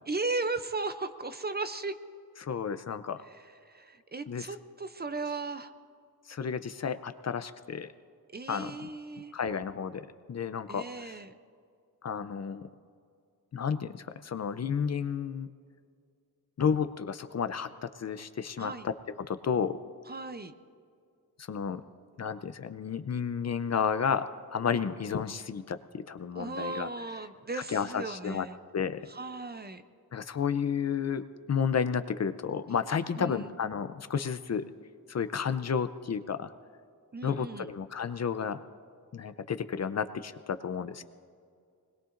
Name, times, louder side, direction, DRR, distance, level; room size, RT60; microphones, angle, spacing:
voice 1, 0.1-1.9 3.3-5.7 8.3-9.3 10.7-11.3 18.6-18.9 20.1-20.5 26.3-28.6 29.1-29.8 33.2-33.5 37.1-37.7, right 3 dB, 25° right, 10 dB, 0.5 m, -36 dB
voice 2, 2.4-3.2 4.3-4.5 6.3-7.9 8.5-8.9 9.3-11.2 12.0-12.7 13.5-15.5 16.6-18.9 19.2-19.8 21.5-21.8 22.2-24.3 24.5-26.9 27.5-28.5 28.7-29.0 30.1-31.2 31.5-34.6 35.1-36.5 37.2-38.6 39.1-41.0, left 7 dB, 45° left, 11 dB, 0.5 m, -32 dB
25.0 x 20.5 x 2.6 m, 2.3 s
wide cardioid pair, 150°, 37 cm